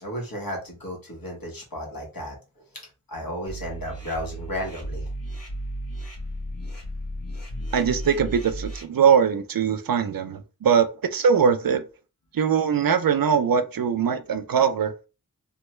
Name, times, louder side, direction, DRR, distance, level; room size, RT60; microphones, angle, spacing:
voice 1, 0.0-5.1, equal, 70° left, 1.3 m, -34 dB
sound 1, 3.5-8.8, equal, 40° left, 1.2 m, -34 dB
voice 2, 7.7-11.8 12.3-14.9, right 7 dB, 70° right, 0.5 m, -21 dB
3.2 x 2.2 x 3.0 m
wide cardioid pair, 45°, 36 cm